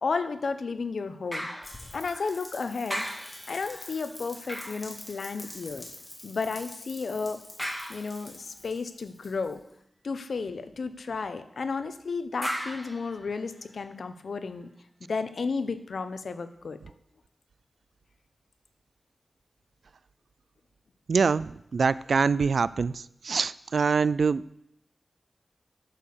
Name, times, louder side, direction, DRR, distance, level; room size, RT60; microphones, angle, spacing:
voice 1, 0.0-1.5 1.9-3.1 3.5-5.9 6.2-7.4 7.9-9.6 10.0-14.7 15.1-16.8, left 4 dB, 80° left, 10 dB, 0.8 m, -33 dB
sound 1, 1.3-2.5 2.9-5.7 7.6-8.5 12.4-13.9 14.4-14.5, equal, 5° right, 1.8 m, -38 dB
Rain, 1.6-9.7, left 1 dB, 30° left, 2.8 m, -46 dB
voice 2, 21.1-24.4, right 5 dB, 80° right, 19 dB, 0.3 m, -25 dB
11.0 x 6.8 x 6.9 m, 0.78 s
wide cardioid pair, 110°, 0 cm